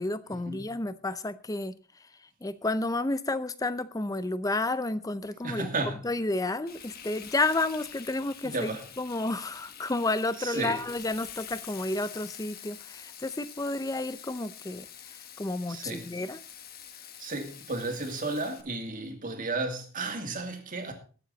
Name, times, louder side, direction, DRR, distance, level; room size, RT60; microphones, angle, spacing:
voice 1, 0.0-5.7 6.0-16.4, left 2 dB, 15° left, 14 dB, 0.6 m, -31 dB
voice 2, 5.4-6.0 8.4-8.8 10.4-10.8 15.7-16.1 17.2-20.9, right 2 dB, 40° right, 4 dB, 2.3 m, -33 dB
Frying (food), 6.7-18.6, left 9 dB, 45° left, 1.2 m, -46 dB
20.0 x 7.6 x 4.0 m, 0.38 s
head